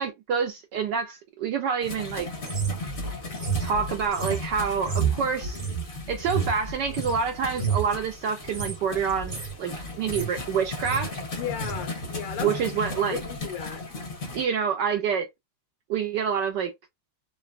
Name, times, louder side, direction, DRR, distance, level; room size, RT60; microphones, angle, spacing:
voice 1, 0.0-2.3 3.6-5.6 6.1-11.2 12.4-13.2 14.3-15.3 15.9-16.7, right 6 dB, 75° right, 1.0 m, -27 dB
sound 1, 1.8-14.4, left 2 dB, 40° left, 0.7 m, -37 dB
sound 2, 2.4-7.2 7.5-7.9 8.4-8.8 9.1-9.5 9.9-10.4 10.7-11.1 11.6-11.8, right 6 dB, 25° right, 0.6 m, -30 dB
voice 2, 11.3-12.6 13.1-13.8 14.3-14.4, left 9 dB, 80° left, 1.8 m, -35 dB
3.8 x 2.1 x 2.3 m
omnidirectional pair, 2.4 m